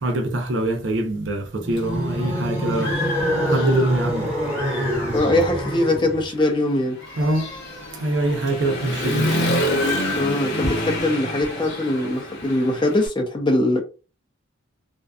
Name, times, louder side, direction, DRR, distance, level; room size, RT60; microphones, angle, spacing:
voice 1, 0.0-3.0 3.5-4.4 7.2-7.5 8.0-9.6 10.6-10.7, right 1 dB, 65° right, 0.6 m, -24 dB
sound 1, 1.6-6.3, equal, 5° right, 0.9 m, -25 dB
Human voice / Motorcycle, 1.8-1.9 2.4-4.1 4.5-13.1, left 1 dB, 55° left, 0.8 m, -28 dB
voice 2, 5.1-7.0 10.1-13.8, left 1 dB, 25° left, 0.5 m, -22 dB
2.6 x 2.2 x 2.3 m
head